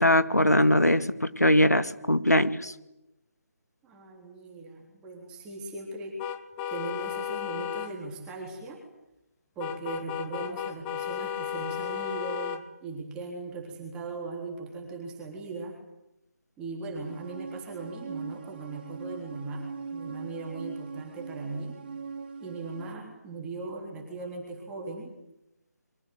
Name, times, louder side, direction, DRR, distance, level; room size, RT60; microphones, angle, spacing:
voice 1, 0.0-2.7, left 1 dB, 85° left, 12 dB, 2.2 m, -21 dB
voice 2, 3.8-6.2 6.7-8.8 9.6-15.8 16.6-19.7 19.9-21.8 22.4-25.2, right 3 dB, 10° right, 0 dB, 3.8 m, -39 dB
sound 1, 6.2-7.9 9.6-12.6, left 9 dB, 15° left, 1.2 m, -34 dB
sound 2, 17.0-22.9, right 5 dB, 40° right, 2.3 m, -41 dB
28.5 x 24.0 x 8.0 m, 0.91 s
figure-of-eight pair, 150°, 9 cm